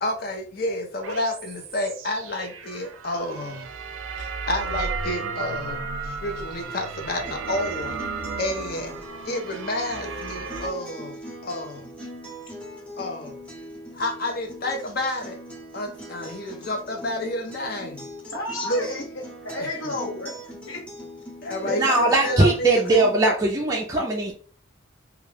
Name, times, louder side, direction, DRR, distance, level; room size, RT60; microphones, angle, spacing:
voice 1, 0.0-3.7 4.2-8.0 8.4-8.9 9.2-11.2 11.4-11.8 13.0-13.4 13.9-15.4 15.7-18.1 18.6-18.8 19.6-19.9 21.4-21.9 22.2-23.3, left 1 dB, 50° left, 4 dB, 0.6 m, -30 dB
sound 1, 1.0-10.7, right 4 dB, 90° right, 0.4 m, -34 dB
Acoustic guitar, 7.2-23.3, equal, 5° left, 0.8 m, -41 dB
voice 2, 18.3-20.3 20.7-20.8 21.6-21.9, left 1 dB, 90° left, 0 dB, 0.9 m, -31 dB
voice 3, 21.7-24.3, right 2 dB, 20° right, -2 dB, 0.3 m, -20 dB
2.3 x 2.2 x 3.2 m, 0.42 s
head